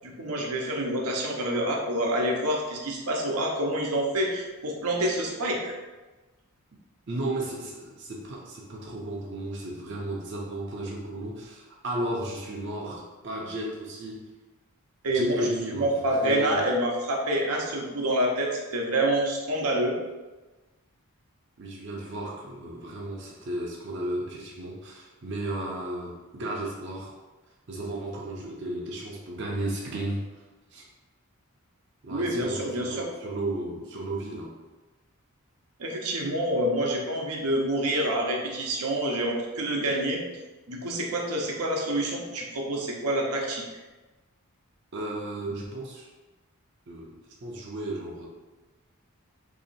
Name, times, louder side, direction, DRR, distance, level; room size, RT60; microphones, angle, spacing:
voice 1, 0.0-5.7 15.0-20.0 32.1-33.1 35.8-40.2 40.7-43.6, right 1 dB, 85° right, 0 dB, 0.8 m, -27 dB
voice 2, 7.1-14.2 15.1-16.6 21.6-27.1 27.7-30.3 30.7-30.8 32.0-34.6 44.9-46.1 46.9-47.1 47.4-48.3, right 1 dB, 50° right, -3 dB, 0.5 m, -34 dB
2.9 x 2.8 x 4.1 m, 1.2 s
head